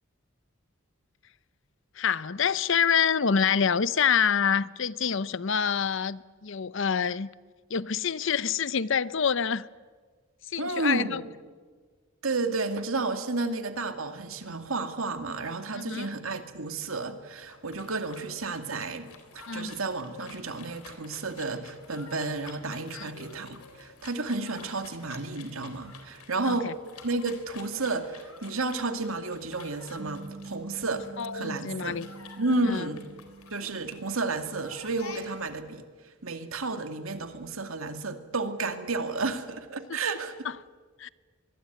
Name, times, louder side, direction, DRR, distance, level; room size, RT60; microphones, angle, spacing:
voice 1, 2.0-7.3 7.7-9.7 10.5-11.2 15.7-16.1 19.5-19.7 22.9-23.1 26.5-26.7 31.2-32.1 32.7-32.9 39.9-40.0 41.0-41.1, left 7 dB, 60° left, 0.7 m, -26 dB
voice 2, 10.6-11.2 12.2-26.7 27.0-32.0 32.4-33.0 33.5-40.4, right 3 dB, 70° right, 2.3 m, -32 dB
sound 1, 17.4-35.6, left 4 dB, 90° left, 3.9 m, -50 dB
sound 2, 30.0-34.6, right 3 dB, 50° right, 1.2 m, -46 dB
25.0 x 21.5 x 9.4 m
head